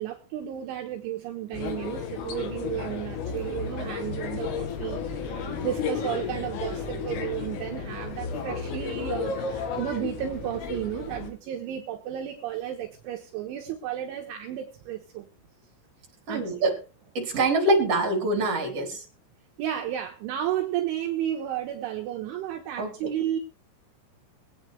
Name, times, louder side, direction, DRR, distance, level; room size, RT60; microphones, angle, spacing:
voice 1, 0.0-15.2 16.3-16.5 19.6-23.4, right 11 dB, 75° right, 2 dB, 3.4 m, -33 dB
sound 1, 1.5-11.3, left 5 dB, 75° left, 4.4 m, -33 dB
voice 2, 16.3-16.7 17.1-19.0 22.8-22.9, right 2 dB, 30° right, 1 dB, 4.5 m, -24 dB
23.0 x 8.8 x 3.4 m, 0.33 s
omnidirectional pair, 5.9 m